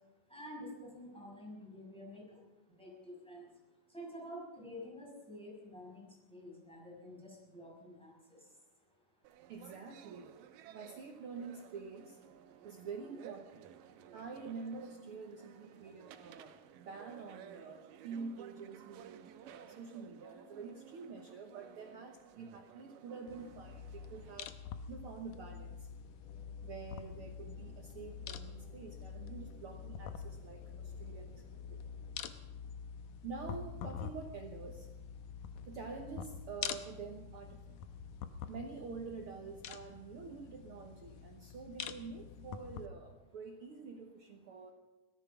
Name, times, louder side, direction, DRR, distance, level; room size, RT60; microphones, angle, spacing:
voice 1, 0.3-2.2 2.7-3.5 3.9-8.4 13.1-13.2, equal, ahead, -4 dB, 6.1 m, -49 dB
sound 1, 9.2-24.5, right 10 dB, 85° right, 2.4 m, -56 dB
voice 2, 9.5-10.3 10.7-12.2 12.6-13.7 14.1-24.5 24.9-25.9 26.6-31.8 33.2-34.9 35.7-37.8 38.5-44.7, right 5 dB, 70° right, 3 dB, 1.3 m, -47 dB
sound 2, 23.3-42.9, left 7 dB, 80° left, 2.3 m, -46 dB
sound 3, 25.8-33.4, left 5 dB, 60° left, 2.0 m, -63 dB
17.5 x 14.0 x 5.9 m, 1.1 s
omnidirectional pair, 3.8 m